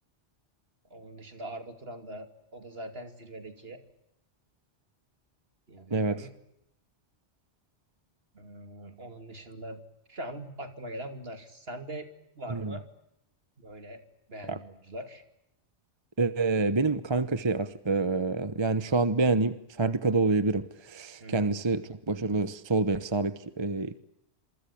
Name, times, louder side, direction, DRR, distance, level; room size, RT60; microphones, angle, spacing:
voice 1, 0.9-3.8 5.7-6.3 8.3-9.8 10.1-12.1 12.4-12.8 13.6-14.0 14.3-15.2 21.2-21.6, right 1 dB, 60° right, 8 dB, 3.0 m, -42 dB
voice 2, 16.2-24.0, right 3 dB, 25° right, 13 dB, 1.1 m, -27 dB
27.5 x 23.5 x 8.6 m, 0.82 s
omnidirectional pair, 1.2 m